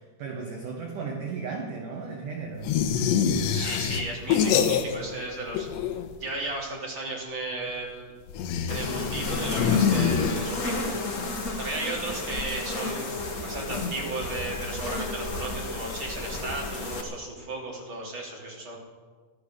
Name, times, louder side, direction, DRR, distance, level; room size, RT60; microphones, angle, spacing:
voice 1, 0.0-2.7, right 4 dB, 60° right, 1 dB, 2.4 m, -35 dB
sound 1, 2.6-5.2 5.5-6.3 8.3-10.8, left 7 dB, 90° left, 3.3 m, -26 dB
voice 2, 3.5-5.7 6.2-8.1 8.7-11.0 11.6-13.1 13.4-18.8, right 2 dB, 30° right, -3 dB, 3.7 m, -35 dB
sound 2, 8.7-17.0, left 2 dB, 55° left, 0.9 m, -32 dB
16.0 x 13.0 x 6.6 m, 1.4 s
omnidirectional pair, 5.0 m